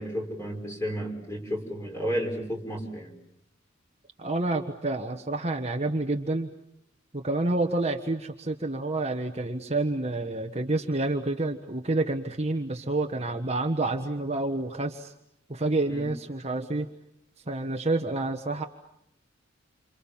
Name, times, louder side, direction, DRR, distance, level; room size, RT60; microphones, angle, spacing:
voice 1, 0.0-3.1 15.9-16.1, equal, 15° left, 2 dB, 5.7 m, -32 dB
voice 2, 4.2-6.5 7.1-15.1 15.5-16.9 17.5-18.6, right 2 dB, 30° right, 3 dB, 1.3 m, -28 dB
28.5 x 28.0 x 7.3 m, 0.75 s
head